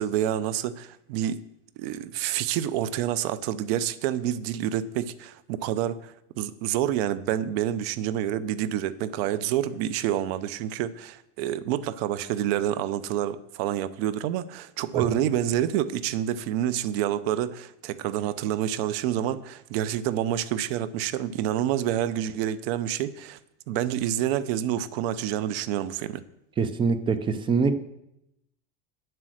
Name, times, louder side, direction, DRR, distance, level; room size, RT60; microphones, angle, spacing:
voice 1, 0.0-1.4 1.8-23.4 23.7-26.2, right 11 dB, 60° right, 0.7 m, -28 dB
voice 2, 26.6-27.8, right 5 dB, 15° right, 0.5 m, -24 dB
9.4 x 7.7 x 6.4 m
supercardioid pair, 165°, 34 cm